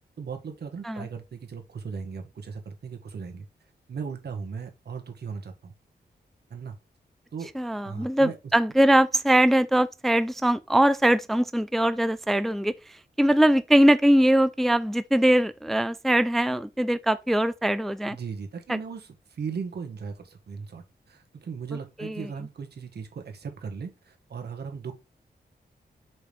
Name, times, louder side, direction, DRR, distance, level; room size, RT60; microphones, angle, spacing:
voice 1, 0.2-3.4 3.9-5.7 6.5-6.7 7.3-7.5 7.8-8.4 18.1-24.9, right 5 dB, 75° right, 1.6 m, -37 dB
voice 2, 7.6-12.7 13.2-18.2 18.7-18.8 22.0-22.1, right 1 dB, ahead, 0.4 m, -21 dB
6.2 x 5.3 x 3.1 m
wide cardioid pair, 120°, 17 cm